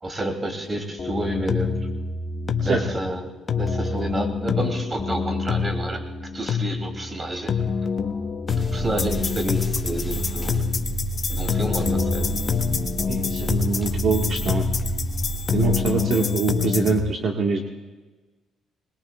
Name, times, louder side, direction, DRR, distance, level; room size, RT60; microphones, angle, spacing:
voice 1, 0.0-1.8 2.6-3.3 3.5-6.0 6.3-7.5 8.7-10.7 11.3-12.3, right 1 dB, 30° right, 4 dB, 2.9 m, -29 dB
sound 1, 1.0-17.0, left 5 dB, 45° left, 1.3 m, -26 dB
sound 2, 8.5-15.9, right 1 dB, 5° right, 3.0 m, -30 dB
voice 2, 13.1-14.6 15.5-17.6, right 4 dB, 60° right, 1 dB, 1.6 m, -24 dB
21.0 x 21.0 x 2.4 m, 1.2 s
cardioid pair, 75°, 0 cm